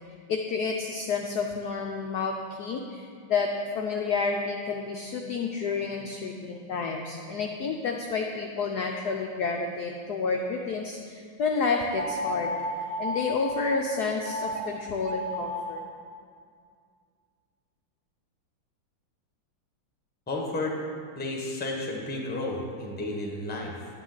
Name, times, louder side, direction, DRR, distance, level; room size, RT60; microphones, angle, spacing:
voice 1, 0.3-12.5 13.0-15.8, left 4 dB, 75° left, 2 dB, 0.9 m, -30 dB
sound 1, 11.9-13.8 14.2-14.6 15.0-15.8, left 1 dB, 50° right, 0.8 m, -33 dB
voice 2, 20.3-20.8 21.1-23.9, left 2 dB, 10° left, -1 dB, 0.7 m, -32 dB
9.9 x 9.2 x 3.9 m, 2.2 s
omnidirectional pair, 2.3 m